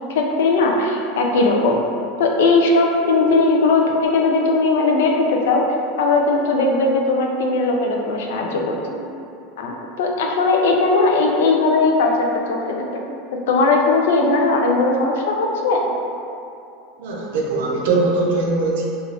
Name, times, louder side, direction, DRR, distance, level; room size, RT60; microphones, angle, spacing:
voice 1, 0.1-1.8 2.2-5.7 6.0-9.1 9.6-13.0 13.5-15.9, left 3 dB, 75° left, 1 dB, 0.4 m, -18 dB
voice 2, 17.0-18.9, right 3 dB, 65° right, -2 dB, 0.5 m, -21 dB
2.5 x 2.3 x 3.3 m, 2.7 s
supercardioid pair, 180°, 0 cm